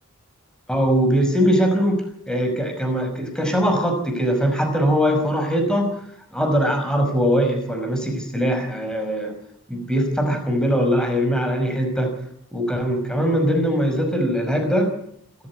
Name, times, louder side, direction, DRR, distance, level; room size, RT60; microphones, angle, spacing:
voice 1, 0.7-5.9 6.3-9.3 9.7-12.1 12.5-14.9, equal, 5° left, 4 dB, 5.5 m, -21 dB
27.0 x 14.5 x 8.6 m, 0.70 s
head